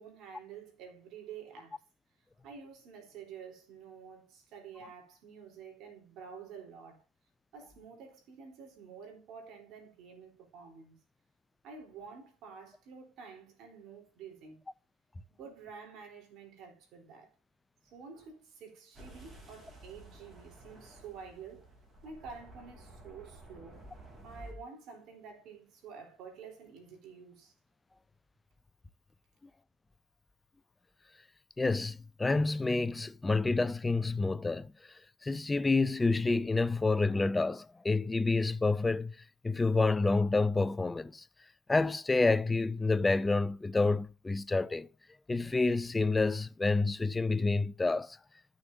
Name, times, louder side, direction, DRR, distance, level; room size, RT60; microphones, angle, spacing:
voice 1, 0.0-1.8 2.4-7.0 7.5-11.0 11.6-14.6 15.4-17.3 17.8-21.7 22.0-23.9 24.2-27.5, right 6 dB, 60° right, 3.6 m, -49 dB
sound 1, 18.9-24.5, right 2 dB, 20° right, 3.3 m, -53 dB
voice 2, 31.6-34.7 35.2-39.1 39.4-41.2 41.7-44.9 45.3-48.2, left 3 dB, 15° left, 0.4 m, -28 dB
13.5 x 6.4 x 2.7 m
cardioid pair, 115°, 0 cm